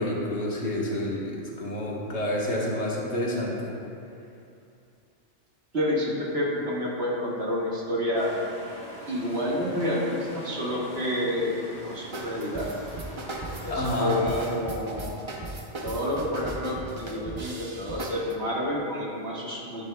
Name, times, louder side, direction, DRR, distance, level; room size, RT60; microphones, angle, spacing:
voice 1, 0.0-3.8 13.7-14.2, left 1 dB, 65° left, -4 dB, 1.6 m, -29 dB
voice 2, 5.7-8.3 9.1-11.5 11.8-12.7 13.6-15.2 15.8-19.9, left 1 dB, 60° right, -5 dB, 1.9 m, -29 dB
snowmobiles pull away constant noise, 8.1-14.6, equal, 35° left, 2.5 m, -43 dB
sound 1, 12.1-18.4, right 2 dB, 30° right, 0.6 m, -37 dB
11.0 x 11.0 x 2.3 m, 2.6 s
omnidirectional pair, 1.2 m